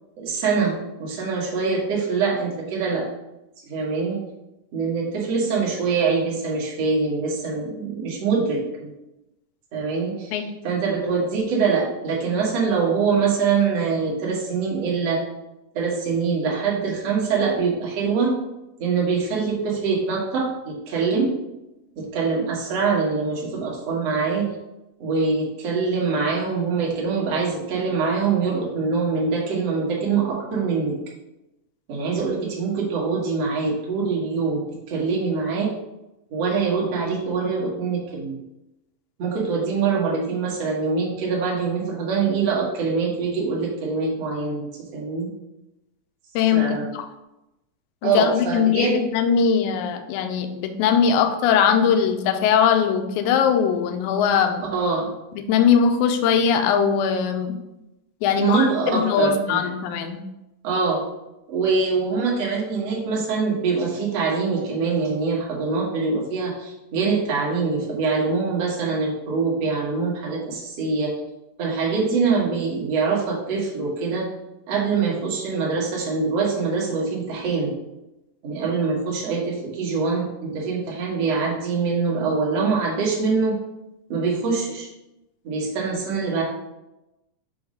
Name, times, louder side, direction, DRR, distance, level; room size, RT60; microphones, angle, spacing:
voice 1, 0.2-3.0 3.7-4.2 4.7-8.9 9.7-10.4 10.6-15.2 15.7-18.3 18.8-21.3 22.0-24.5 25.0-31.0 31.9-35.7 36.3-38.4 39.2-44.7 44.9-45.3 46.5-46.9 48.0-49.1 54.1-54.2 54.7-55.1 58.4-59.7 60.6-61.0 61.5-71.1 71.6-74.3 74.7-77.7 78.4-83.6 84.1-84.9 85.4-86.4, right 4 dB, 55° right, -3 dB, 2.0 m, -24 dB
voice 2, 46.4-47.0 48.0-54.7 55.3-57.6 58.2-60.2, left 7 dB, 85° left, 6 dB, 1.8 m, -20 dB
6.3 x 3.1 x 4.9 m, 0.94 s
omnidirectional pair, 4.0 m